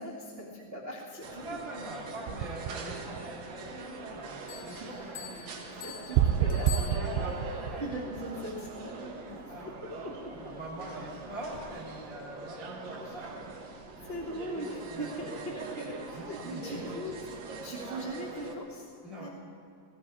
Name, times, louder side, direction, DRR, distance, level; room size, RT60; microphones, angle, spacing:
voice 1, 0.0-1.4 4.8-4.9 5.7-7.1 7.8-9.1 9.4-9.5 9.8-10.3 13.0-13.2 14.0-17.3 17.6-18.8 19.2-19.3, right 1 dB, 35° right, -7 dB, 1.0 m, -40 dB
sound 1, 1.2-18.5, right 3 dB, 65° right, 1.8 m, -42 dB
voice 2, 1.3-5.5 6.7-7.9 8.3-8.4 9.2-9.6 10.2-13.7 14.8-15.2 16.1-16.6 19.0-19.3, right 1 dB, 35° left, -4 dB, 1.4 m, -43 dB
sound 2, 2.3-3.7 6.1-8.7, right 10 dB, 85° right, 2.4 m, -29 dB
Bell, 4.5-7.6, left 9 dB, 70° left, 3.2 m, -45 dB
19.0 x 16.0 x 4.8 m, 2.5 s
omnidirectional pair, 5.2 m